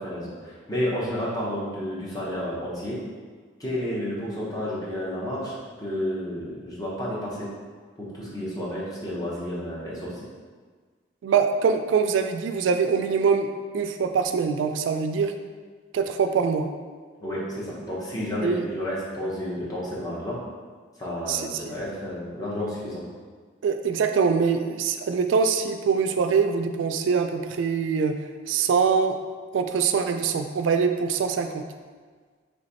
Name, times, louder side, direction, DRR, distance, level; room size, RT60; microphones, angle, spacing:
voice 1, 0.0-3.0 3.6-7.5 8.0-10.3 17.2-20.4 21.0-23.0, equal, 20° left, -7 dB, 0.9 m, -31 dB
voice 2, 11.2-13.5 13.7-15.3 15.9-16.7 18.4-18.7 21.3-21.7 23.6-29.2 29.5-31.6, right 5 dB, 85° right, 6 dB, 0.3 m, -23 dB
3.3 x 3.1 x 4.0 m, 1.5 s
head